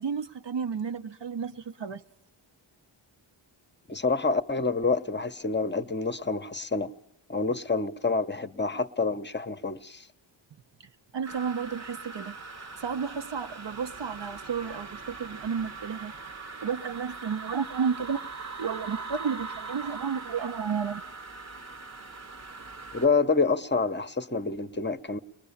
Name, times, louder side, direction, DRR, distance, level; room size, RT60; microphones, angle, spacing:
voice 1, 0.0-2.0 7.5-7.6 11.1-16.1 16.6-18.2 18.6-21.0, right 6 dB, 60° right, 0.8 m, -32 dB
voice 2, 3.9-6.9 7.3-10.1 22.9-25.2, left 4 dB, 25° left, 0.8 m, -27 dB
sound 1, 11.2-23.1, right 4 dB, 35° right, 0.9 m, -41 dB
23.0 x 20.0 x 7.1 m
cardioid pair, 55°, 47 cm